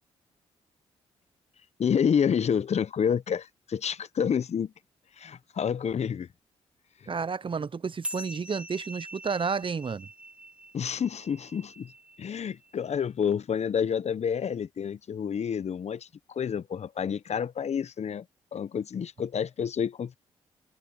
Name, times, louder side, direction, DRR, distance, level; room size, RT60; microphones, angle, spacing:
voice 1, 1.8-4.7 5.2-6.3 7.0-7.1 10.7-11.9 12.2-18.2 18.5-20.2, left 7 dB, 55° left, 1.2 m, -29 dB
voice 2, 7.1-10.1, right 5 dB, 40° right, 0.9 m, -31 dB
sound 1, 8.0-12.9, right 1 dB, 10° right, 4.1 m, -44 dB
hypercardioid pair, 45°, 13 cm